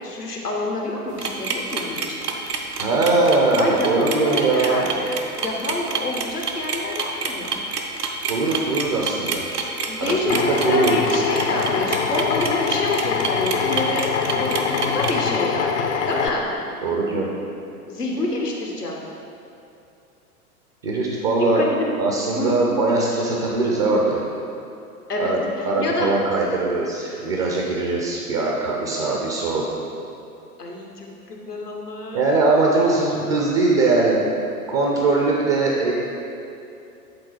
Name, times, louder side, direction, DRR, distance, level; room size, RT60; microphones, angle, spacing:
voice 1, 0.0-2.2 3.5-7.6 9.9-16.4 17.9-19.0 21.5-21.9 22.3-22.6 25.1-26.1 30.6-32.3, left 2 dB, 90° left, -1 dB, 1.0 m, -27 dB
sound 1, 1.1-15.1, right 5 dB, 80° right, 0.8 m, -28 dB
voice 2, 2.8-4.8 8.3-9.4 10.0-10.9 16.8-17.3 20.8-21.6 22.0-24.2 25.2-29.6 32.1-34.1 34.7-35.9, right 3 dB, 20° right, -2 dB, 0.4 m, -21 dB
Drill, 10.3-16.3, left 6 dB, 50° left, 0.5 m, -24 dB
7.7 x 3.7 x 4.5 m, 2.7 s
figure-of-eight pair, 100°, 46 cm